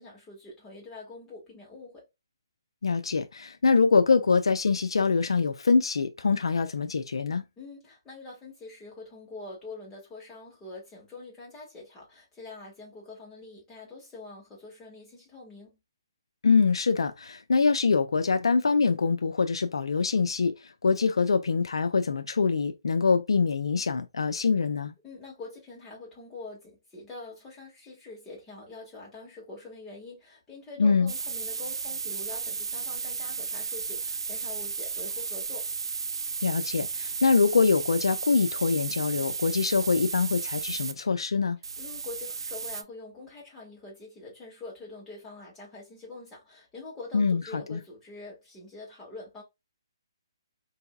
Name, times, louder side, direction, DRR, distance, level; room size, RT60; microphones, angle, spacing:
voice 1, 0.0-2.1 7.6-15.8 25.0-35.7 41.8-49.4, left 3 dB, 15° left, 1.6 m, -45 dB
voice 2, 2.8-7.4 16.4-24.9 30.8-31.1 36.4-41.6 47.1-47.8, left 4 dB, 85° left, 0.4 m, -24 dB
sound 1, 31.1-40.9 41.6-42.8, right 5 dB, 75° right, 0.4 m, -34 dB
4.6 x 2.7 x 2.3 m
hypercardioid pair, 150°, 3 cm